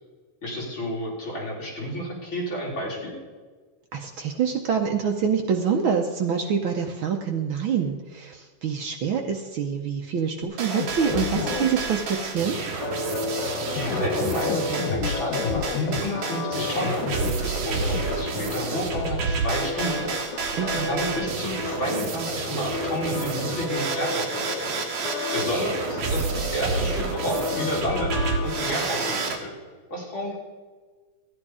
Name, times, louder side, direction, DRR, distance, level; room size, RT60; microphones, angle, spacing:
voice 1, 0.4-3.1 13.7-17.0 17.4-20.1 20.8-24.7 25.3-28.2 28.4-29.5 29.9-30.4, equal, 40° left, -4 dB, 4.3 m, -31 dB
voice 2, 3.9-12.6 20.6-20.9, right 7 dB, 85° right, 3 dB, 1.1 m, -26 dB
sound 1, 10.4-11.7 13.7-16.0 16.8-17.3 17.9-18.0, left 6 dB, 85° left, 2.5 m, -29 dB
sound 2, 10.6-29.4, right 4 dB, 55° right, 2.2 m, -30 dB
sound 3, 12.8-29.1, left 4 dB, 60° left, 2.3 m, -32 dB
14.0 x 9.9 x 4.9 m, 1.4 s
omnidirectional pair, 3.3 m